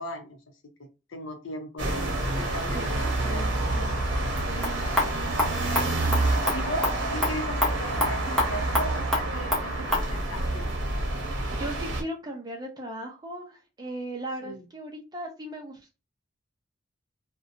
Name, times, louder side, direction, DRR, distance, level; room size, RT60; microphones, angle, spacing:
voice 1, 0.0-3.5 4.9-5.1 6.5-10.7 14.4-14.7, equal, 75° left, 0.7 m, -37 dB
sound 1, 1.8-12.0, right 2 dB, 60° right, 0.8 m, -28 dB
voice 2, 2.7-3.9 4.5-5.4 8.3-8.4 11.5-16.0, right 1 dB, 20° right, 0.5 m, -38 dB
sound 2, 4.4-10.1, left 1 dB, ahead, 0.8 m, -30 dB
2.6 x 2.2 x 2.5 m
head